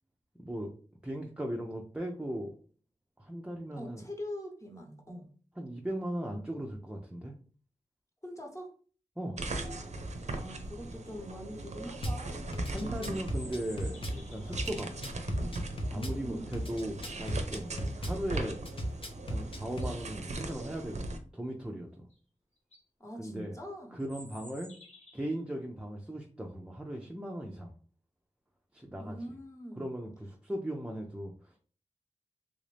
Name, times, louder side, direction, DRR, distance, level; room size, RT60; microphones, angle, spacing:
voice 1, 0.4-0.7 1.0-2.5 3.2-4.0 5.6-7.3 9.2-9.4 12.7-15.0 15.9-19.0 19.2-22.1 23.2-23.6 23.9-24.7 25.1-27.7 28.7-29.2 29.8-31.6, right 1 dB, 10° right, 0 dB, 0.5 m, -38 dB
voice 2, 3.8-5.3 8.2-8.7 10.3-12.5 15.9-16.6 23.0-24.0 29.0-29.9, equal, 25° left, 1 dB, 1.0 m, -43 dB
sound 1, 9.4-21.2, right 2 dB, 60° right, 0.6 m, -39 dB
Drum kit / Bass drum, 12.0-12.2 12.5-14.2 14.5-16.2 16.5-18.2 18.7-19.9, equal, 45° left, 0.7 m, -35 dB
sound 2, 12.8-14.6 19.1-19.2 19.6-20.1 22.1-22.2 22.6-22.8 24.0-25.4, left 2 dB, 65° left, 1.3 m, -53 dB
3.3 x 2.6 x 3.3 m, 0.41 s
wide cardioid pair, 70°, 13 cm